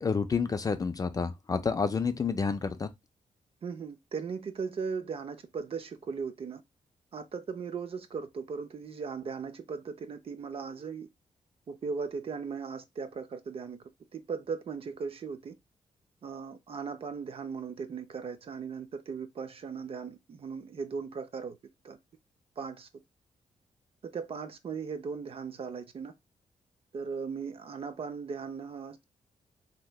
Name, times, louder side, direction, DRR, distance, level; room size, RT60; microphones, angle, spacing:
voice 1, 0.0-2.9, left 5 dB, 30° left, 0.3 m, -29 dB
voice 2, 3.6-6.6 7.1-11.1 11.7-13.8 14.1-15.5 16.2-21.6 21.8-22.0 22.6-22.9 24.0-26.1 26.9-29.0, right 5 dB, 50° right, 0.5 m, -38 dB
3.2 x 2.8 x 2.2 m
cardioid pair, 120°, 13 cm